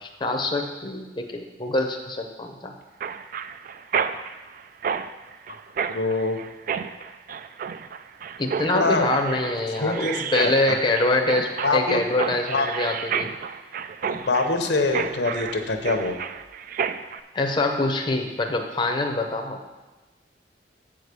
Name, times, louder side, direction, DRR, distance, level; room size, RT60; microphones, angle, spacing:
voice 1, 0.0-2.7 8.4-13.3 17.3-19.6, left 2 dB, 25° left, 3 dB, 0.6 m, -25 dB
Mechanisms, 3.0-17.2, right 7 dB, 50° right, 0.3 m, -31 dB
voice 2, 5.9-6.4 8.7-9.1 9.8-10.8 11.6-12.0 12.5-12.7 14.0-16.2, left 3 dB, 80° left, 5 dB, 0.9 m, -24 dB
7.4 x 4.8 x 6.7 m, 1.2 s
head